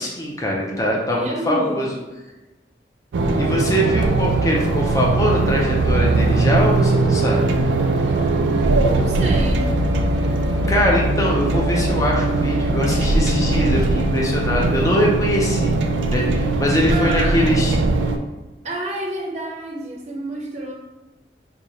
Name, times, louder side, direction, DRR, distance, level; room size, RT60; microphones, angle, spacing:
voice 1, 0.0-1.9 3.4-7.4 10.5-15.7 16.1-17.8, equal, 20° left, -2 dB, 0.5 m, -22 dB
voice 2, 1.1-1.8 8.9-9.7 16.9-17.5 18.6-20.7, right 1 dB, 40° right, -1 dB, 0.6 m, -28 dB
sound 1, 3.1-18.2, right 2 dB, 90° right, 0.4 m, -20 dB
3.0 x 2.3 x 3.8 m, 1.1 s
head